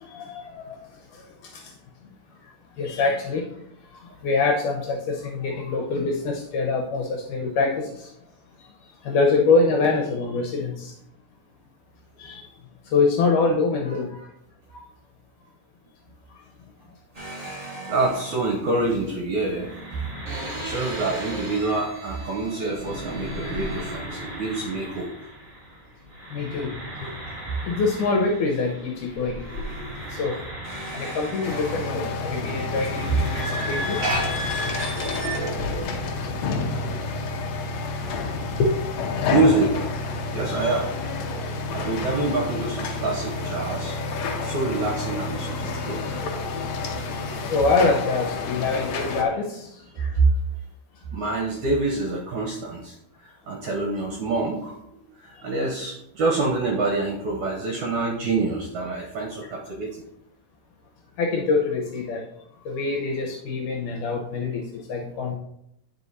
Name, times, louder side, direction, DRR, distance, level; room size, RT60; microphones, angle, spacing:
voice 1, 0.0-0.8 1.5-1.6 2.8-3.5 4.2-8.1 9.0-10.9 12.2-12.5 12.9-14.2 23.4-23.5 26.3-26.7 27.0-27.1 27.7-29.4 30.1-30.4 30.9-34.0 38.6-38.8 40.5-40.7 47.5-49.7 50.0-50.1 61.2-62.2 62.7-64.6 64.9-65.3, left 4 dB, 75° left, 0 dB, 2.0 m, -24 dB
sound 1, 17.1-25.8 26.1-35.8, right 1 dB, 20° right, 1.8 m, -35 dB
voice 2, 17.9-19.7 20.6-25.1 33.1-33.2 34.0-34.4 35.7-35.8 39.2-39.9 40.3-40.9 41.4-44.0 44.4-46.1 49.9-50.3 51.1-53.0 53.2-60.1, right 3 dB, 70° right, 0 dB, 1.8 m, -26 dB
sound 2, 31.4-49.2, left 3 dB, 90° left, 1.5 m, -29 dB
9.0 x 4.8 x 4.0 m, 0.77 s
omnidirectional pair, 4.5 m